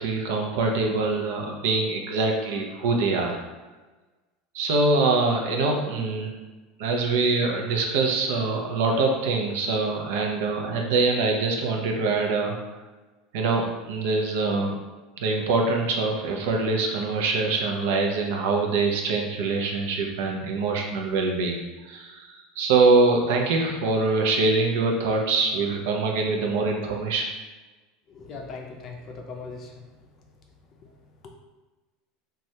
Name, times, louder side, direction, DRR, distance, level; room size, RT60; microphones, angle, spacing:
voice 1, 0.0-3.4 4.5-6.3 6.8-12.6 13.3-14.8 15.2-22.3 22.6-27.3, right 3 dB, 75° right, 1 dB, 0.5 m, -24 dB
voice 2, 28.1-29.9 30.8-30.9 31.2-31.3, left 4 dB, 35° left, 2 dB, 0.4 m, -39 dB
3.1 x 2.3 x 2.7 m, 1.2 s
supercardioid pair, 145°, 0 cm